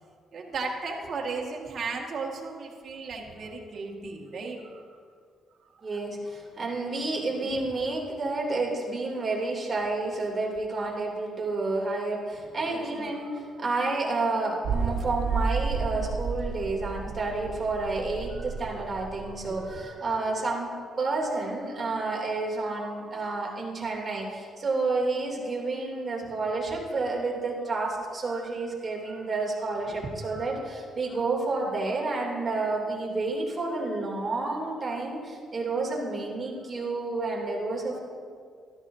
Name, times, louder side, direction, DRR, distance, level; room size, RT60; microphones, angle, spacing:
voice 1, 0.3-5.0 5.6-6.0 7.4-7.5 12.6-13.4 18.2-18.6 19.1-20.2 20.5-20.7 21.4-21.5 21.8-22.1 22.7-23.7 27.0-27.1 28.3-28.7 29.0-29.3 29.9-30.7 32.1-32.2, right 4 dB, 55° right, 0 dB, 1.8 m, -38 dB
voice 2, 5.8-38.0, right 3 dB, 30° right, -3 dB, 3.0 m, -30 dB
sound 1, 14.6-19.8, right 5 dB, 70° right, 0.5 m, -32 dB
13.0 x 12.5 x 2.8 m, 2.1 s
cardioid pair, 90°, 0 cm